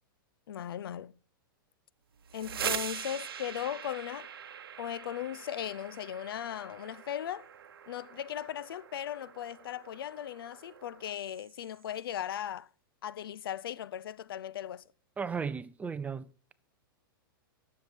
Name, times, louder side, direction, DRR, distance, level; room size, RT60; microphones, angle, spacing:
voice 1, 0.5-1.1 2.3-4.3 4.8-7.5 7.9-12.7 13.0-14.8, left 10 dB, 80° left, 0.5 m, -38 dB
sound 1, 2.1-11.9, right 8 dB, 85° right, 0.8 m, -43 dB
voice 2, 15.2-16.5, right 6 dB, 10° right, 0.5 m, -36 dB
10.5 x 7.2 x 4.5 m
hypercardioid pair, 120°, 12 cm